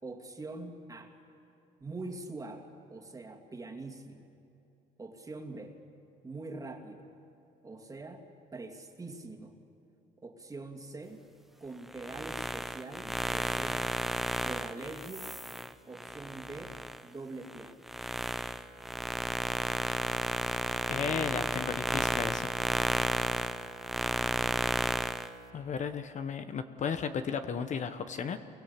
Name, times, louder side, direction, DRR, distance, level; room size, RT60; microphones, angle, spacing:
voice 1, 0.0-1.2 1.8-4.3 5.0-5.8 6.2-7.1 7.6-9.6 10.2-11.2 11.6-14.0 14.4-15.3 15.8-17.8, right 2 dB, 20° right, 3 dB, 2.6 m, -44 dB
sound 1, 11.9-17.0 17.4-25.3, right 1 dB, ahead, 0.9 m, -32 dB
voice 2, 20.9-22.5 25.5-28.4, left 6 dB, 45° left, 9 dB, 1.1 m, -34 dB
27.5 x 23.0 x 8.3 m, 2.9 s
cardioid pair, 110°, 17 cm